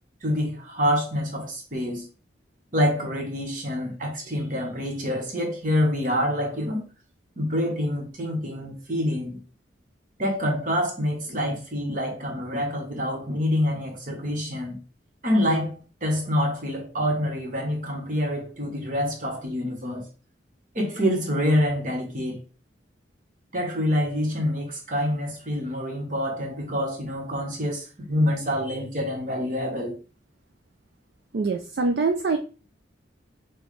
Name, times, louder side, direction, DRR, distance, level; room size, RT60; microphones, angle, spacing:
voice 1, 0.2-2.1 2.7-6.8 7.4-9.4 10.2-14.8 15.2-20.0 20.7-22.4 23.5-30.0, equal, 45° right, 1.2 m, -26 dB
voice 2, 31.3-32.4, right 3 dB, 60° right, 0.4 m, -24 dB
6.2 x 2.3 x 3.2 m
head